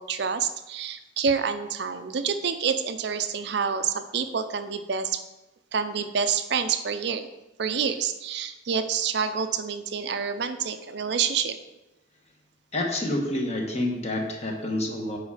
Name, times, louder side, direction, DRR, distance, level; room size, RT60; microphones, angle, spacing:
voice 1, 0.0-5.2 5.7-7.3 7.6-11.6, right 6 dB, 55° right, 9 dB, 0.5 m, -27 dB
voice 2, 12.7-15.2, left 1 dB, 35° left, 1 dB, 1.1 m, -28 dB
8.1 x 4.8 x 4.8 m, 1.0 s
head